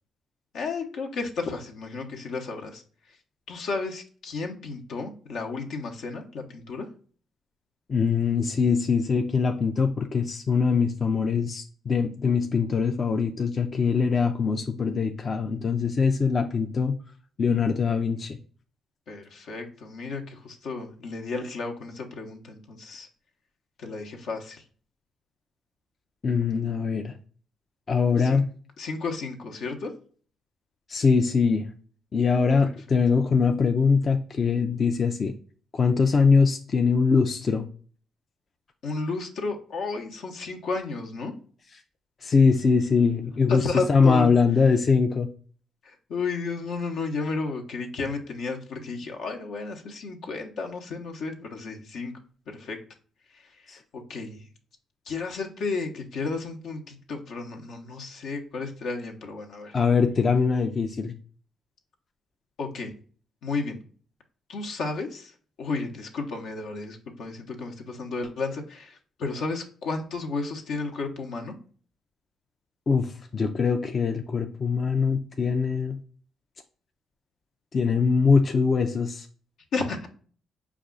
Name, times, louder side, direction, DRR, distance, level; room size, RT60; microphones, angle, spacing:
voice 1, 0.5-2.8 3.5-6.9 19.1-23.1 23.8-24.6 28.2-28.4 28.8-29.9 32.6-32.7 38.8-41.3 43.5-44.4 45.8-52.1 52.5-52.8 53.3-53.8 54.1-54.5 55.1-59.8 62.6-62.9 63.4-63.8 64.5-65.3 65.6-71.5 79.7-80.1, left 4 dB, 75° left, 2 dB, 0.9 m, -33 dB
voice 2, 7.9-17.0 17.4-18.4 26.2-27.1 27.9-28.5 30.9-31.6 32.1-35.3 35.7-37.6 42.2-45.3 53.7-53.8 59.7-61.1 72.9-76.0 77.7-79.3, left 5 dB, 40° left, 4 dB, 0.4 m, -22 dB
5.1 x 2.4 x 3.7 m, 0.43 s
cardioid pair, 90°, 0 cm